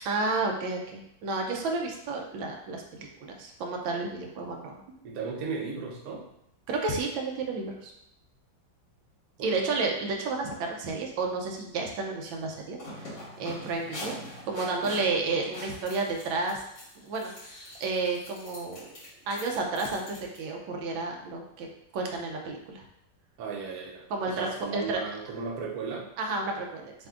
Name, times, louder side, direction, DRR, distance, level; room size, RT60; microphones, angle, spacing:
voice 1, 0.0-4.7 6.7-7.9 9.4-14.2 14.5-16.6 17.0-17.3 17.8-18.9 19.3-21.7 21.9-22.8 24.1-24.5 24.7-25.0 26.2-26.9, right 3 dB, 85° right, 1 dB, 1.4 m, -31 dB
voice 2, 5.0-6.3 9.4-9.8 23.4-26.1, right 5 dB, 60° right, -1 dB, 1.1 m, -36 dB
sound 1, 12.7-20.4, left 1 dB, 60° left, 2.4 m, -43 dB
6.6 x 2.6 x 2.4 m, 0.77 s
omnidirectional pair, 2.1 m